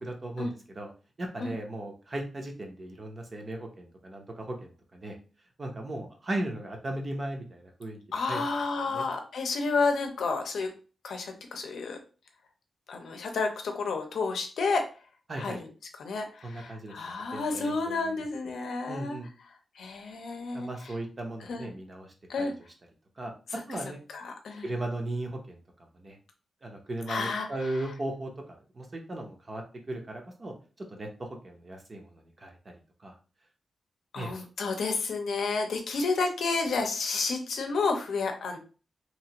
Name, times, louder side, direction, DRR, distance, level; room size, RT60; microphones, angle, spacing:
voice 1, 0.0-0.9 1.2-5.2 5.6-8.5 8.8-9.1 15.3-15.6 16.4-16.9 17.3-18.1 18.9-19.3 20.5-22.5 23.2-23.3 23.7-24.0 24.6-25.6 25.9-26.2 26.6-30.5 30.9-32.7 33.0-33.1 34.1-34.3, right 1 dB, 30° right, 2 dB, 0.6 m, -37 dB
voice 2, 8.1-10.7 11.0-12.0 12.9-14.9 15.4-15.7 16.0-19.2 19.8-20.9 21.5-21.7 22.3-22.5 24.1-24.7 27.1-27.8 34.1-38.6, left 4 dB, 85° left, 4 dB, 0.6 m, -31 dB
2.9 x 2.5 x 2.8 m, 0.36 s
wide cardioid pair, 180°, 0 cm